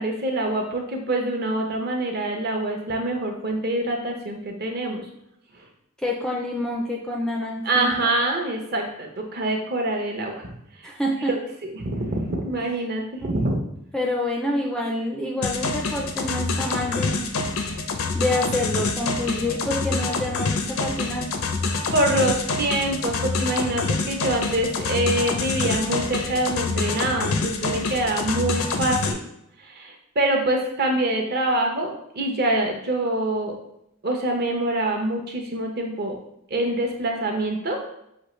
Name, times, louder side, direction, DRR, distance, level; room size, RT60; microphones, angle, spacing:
voice 1, 0.0-5.0 7.6-10.5 11.3-13.6 21.9-29.2 29.6-33.6 34.0-36.2 36.5-37.8, right 1 dB, 45° right, 2 dB, 0.7 m, -25 dB
voice 2, 6.0-8.1 10.8-11.3 13.2-13.4 13.9-17.3 18.1-21.3, left 1 dB, 5° left, -2 dB, 0.4 m, -27 dB
sound 1, 15.4-29.1, left 3 dB, 65° left, 0.5 m, -26 dB
6.1 x 2.4 x 3.1 m, 0.79 s
head